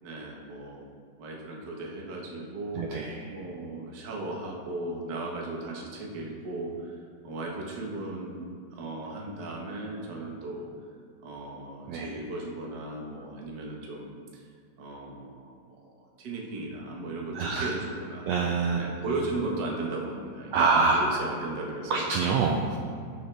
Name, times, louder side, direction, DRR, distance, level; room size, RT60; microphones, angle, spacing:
voice 1, 0.0-0.8 1.2-8.4 8.7-10.7 11.2-14.4 14.8-18.3 18.8-22.1, right 2 dB, 50° right, -1 dB, 1.4 m, -36 dB
voice 2, 2.7-3.2 11.9-12.1 17.3-17.7 18.3-18.8 20.5-21.0 21.9-22.8, right 4 dB, 80° right, 0 dB, 1.6 m, -25 dB
16.0 x 6.6 x 3.4 m, 2.1 s
omnidirectional pair, 3.7 m